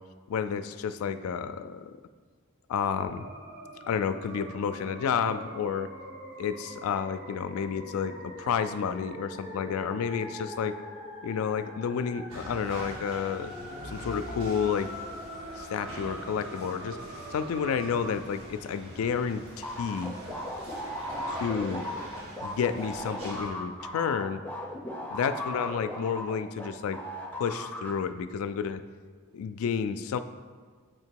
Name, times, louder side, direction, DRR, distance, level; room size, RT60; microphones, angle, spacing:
voice 1, 0.3-1.9 2.7-3.2 3.9-5.9 6.4-10.7 11.2-13.6 13.8-14.9 15.6-17.0 17.3-20.1 21.4-21.8 22.4-24.4 25.1-27.0 27.3-28.8 29.3-30.2, left 7 dB, 85° left, 11 dB, 0.3 m, -30 dB
sound 1, 2.8-18.1, equal, 30° right, 1.7 m, -43 dB
sound 2, 12.3-23.5, right 1 dB, 85° right, 1.4 m, -44 dB
sound 3, 19.6-26.7 26.9-27.9, left 1 dB, 10° left, 0.7 m, -36 dB
7.4 x 2.9 x 4.5 m, 1.5 s
head